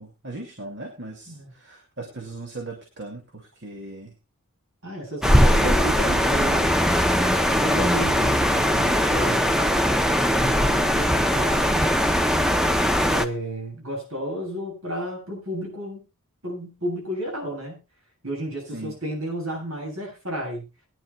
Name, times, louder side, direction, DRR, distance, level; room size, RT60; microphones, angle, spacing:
voice 1, 0.0-4.2 5.3-6.3 18.7-18.9, right 2 dB, 50° right, 2 dB, 2.5 m, -36 dB
voice 2, 4.8-6.8 7.5-9.4 10.4-12.0 13.0-16.0 16.4-17.8 18.2-20.7, equal, 70° right, 0 dB, 7.8 m, -32 dB
sound 1, 5.2-13.3, equal, ahead, 0.7 m, -20 dB
21.0 x 10.5 x 2.3 m, 0.28 s
head